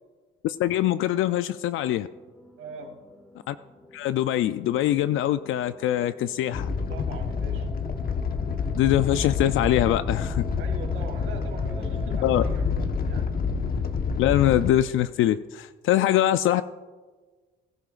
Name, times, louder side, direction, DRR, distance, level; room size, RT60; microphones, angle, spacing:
voice 1, 0.4-2.1 3.5-3.6 3.9-6.7 8.7-10.4 12.2-12.4 14.2-16.6, left 12 dB, 70° left, 12 dB, 0.4 m, -23 dB
sound 1, 1.8-12.4, right 1 dB, 10° left, 2.1 m, -47 dB
voice 2, 2.6-3.0 6.9-7.8 10.5-13.3 15.8-16.1, right 5 dB, 75° right, 1 dB, 3.0 m, -41 dB
Animal, 6.5-14.7, left 5 dB, 45° left, 1.2 m, -28 dB
21.0 x 13.0 x 2.5 m, 1.4 s
cardioid pair, 90°, 21 cm